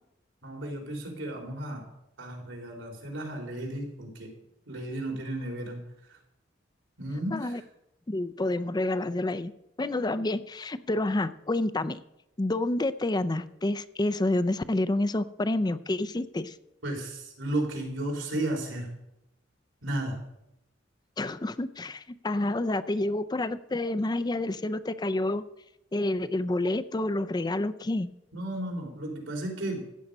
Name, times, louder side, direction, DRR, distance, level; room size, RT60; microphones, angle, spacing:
voice 1, 0.4-1.9 2.2-4.3 4.7-5.8 6.1-6.2 7.0-7.6 16.8-18.9 19.8-20.2 28.3-29.8, right 1 dB, 85° right, 1 dB, 3.9 m, -34 dB
voice 2, 8.1-9.5 9.8-12.0 12.4-16.5 21.2-25.4 25.9-28.1, left 2 dB, 20° left, 14 dB, 0.4 m, -28 dB
14.5 x 8.7 x 5.4 m, 0.85 s
head